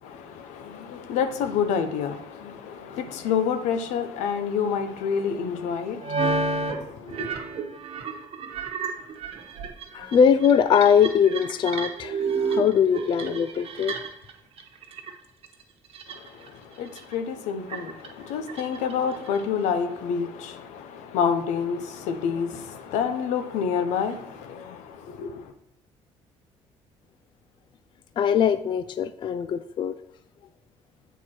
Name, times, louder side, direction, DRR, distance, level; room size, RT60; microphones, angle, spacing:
voice 1, 0.0-7.3 16.1-25.5, left 7 dB, 90° left, 0.8 m, -28 dB
sound 1, 3.2-3.3 6.0-6.8 7.0-14.3 14.6-15.1 15.4-16.5 16.8-17.1 17.7-19.4, right 4 dB, 55° right, 1.1 m, -31 dB
voice 2, 9.9-13.9 28.2-29.9, left 7 dB, 45° left, 0.3 m, -21 dB
8.0 x 4.5 x 4.4 m
cardioid pair, 115°, 12 cm